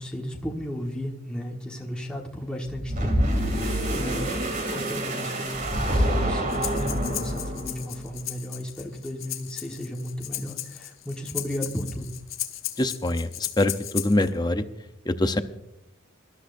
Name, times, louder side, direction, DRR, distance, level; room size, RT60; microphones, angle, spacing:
voice 1, 0.0-12.1, equal, 5° left, -2 dB, 1.4 m, -35 dB
sound 1, 2.7-7.9, right 1 dB, 40° right, 2.6 m, -26 dB
Breathing, 6.5-14.3, left 13 dB, 80° left, 1.1 m, -36 dB
voice 2, 12.8-14.6 15.1-15.4, left 1 dB, 20° left, 9 dB, 0.7 m, -24 dB
24.0 x 12.5 x 2.6 m, 0.87 s
head